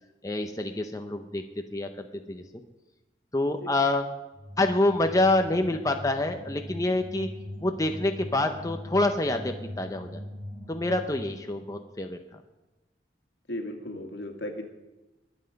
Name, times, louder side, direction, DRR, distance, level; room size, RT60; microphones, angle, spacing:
voice 1, 0.2-1.4 1.7-2.4 3.3-4.1 4.6-7.3 7.6-10.2 10.7-12.2, left 2 dB, 20° left, 5 dB, 0.7 m, -27 dB
sound 1, 4.3-11.7, equal, 65° right, 3.8 m, -41 dB
voice 2, 13.5-14.6, left 1 dB, 75° left, 4 dB, 2.1 m, -35 dB
22.0 x 8.0 x 5.2 m, 1.1 s
head